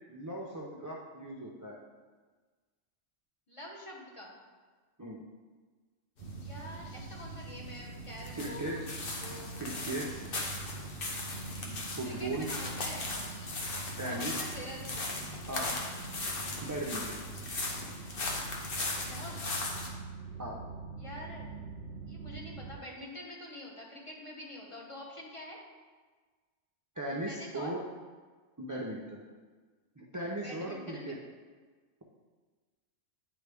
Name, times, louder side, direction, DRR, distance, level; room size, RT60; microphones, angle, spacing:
voice 1, 0.1-1.8 5.0-5.2 8.4-8.8 9.6-10.1 11.6-12.5 14.0-14.4 15.5-15.7 16.6-17.2 20.4-20.6 27.0-27.8 28.6-29.2 30.0-31.2, right 1 dB, 25° right, -3 dB, 0.4 m, -37 dB
voice 2, 3.5-4.3 6.4-8.8 9.2-9.7 10.3-10.4 12.0-13.2 14.1-15.2 19.0-19.5 21.0-21.5 22.1-25.6 27.3-27.7 30.4-31.2, left 1 dB, 30° left, -3 dB, 1.1 m, -46 dB
sound 1, 6.2-19.9, left 2 dB, 55° left, 1.0 m, -38 dB
sound 2, 6.2-22.8, right 3 dB, 65° right, 0.8 m, -44 dB
9.4 x 3.9 x 3.4 m, 1.4 s
omnidirectional pair, 1.2 m